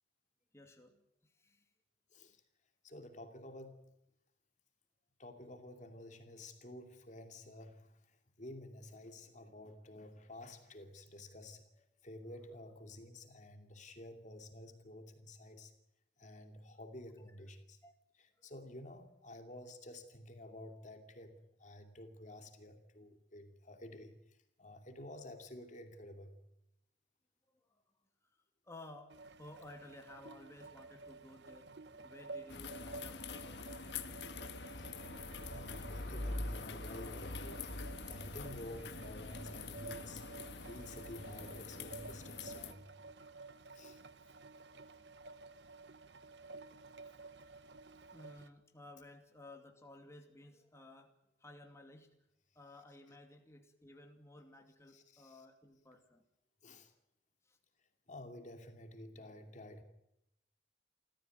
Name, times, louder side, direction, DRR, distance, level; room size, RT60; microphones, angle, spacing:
voice 1, 0.5-1.7 11.2-11.3 11.7-11.8 17.2-17.3 17.8-17.9 18.4-18.5 27.6-27.8 28.2-28.4 28.6-31.7 32.0-34.0 46.3-47.2 48.1-51.1 51.4-52.1 52.5-56.2 57.4-57.6 59.1-59.5, left 2 dB, 15° left, 4 dB, 2.5 m, -56 dB
voice 2, 2.8-3.8 5.2-7.9 8.4-11.6 12.0-15.7 16.2-17.8 18.4-24.1 24.6-26.4 34.7-34.9 35.5-40.3 40.7-43.0 43.7-44.0 54.9-55.4 56.6-56.9 58.1-59.8, left 1 dB, 45° left, 6 dB, 2.6 m, -51 dB
sound 1, 29.1-48.5, right 3 dB, 85° right, 1.2 m, -53 dB
sound 2, 32.5-42.7, left 3 dB, 75° left, 1.5 m, -45 dB
29.0 x 14.5 x 9.2 m, 0.82 s
head